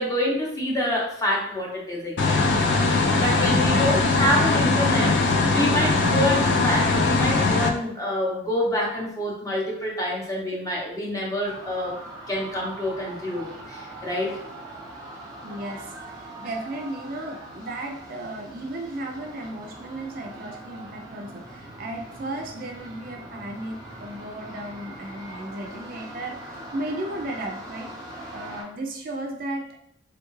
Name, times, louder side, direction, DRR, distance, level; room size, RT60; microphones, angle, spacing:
voice 1, 0.0-11.9 12.3-14.4 16.4-16.5, left 1 dB, 15° left, -3 dB, 0.7 m, -27 dB
sound 1, 2.2-7.7, left 3 dB, 60° left, 0.4 m, -21 dB
sound 2, 11.4-28.6, right 1 dB, 20° right, 0.8 m, -41 dB
voice 2, 15.4-29.8, right 1 dB, 45° right, 1 dB, 0.4 m, -35 dB
3.5 x 2.3 x 3.0 m, 0.75 s
head